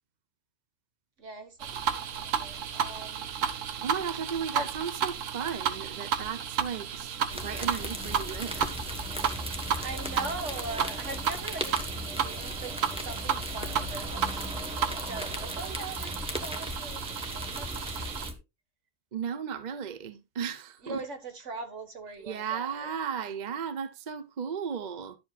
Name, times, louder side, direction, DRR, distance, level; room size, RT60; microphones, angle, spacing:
voice 1, 1.2-3.3 4.5-4.7 9.8-11.9 12.2-12.8 13.0-17.0 17.3-18.4 20.8-22.9, right 3 dB, 70° right, 1.8 m, -41 dB
sound 1, 1.6-18.3, right 7 dB, 90° right, 1.2 m, -33 dB
voice 2, 3.8-8.8 19.1-21.0 22.2-25.2, right 7 dB, 45° right, 0.7 m, -35 dB
sound 2, 7.3-18.3, left 1 dB, 5° right, 1.0 m, -37 dB
11.0 x 7.5 x 2.3 m
omnidirectional pair, 1.3 m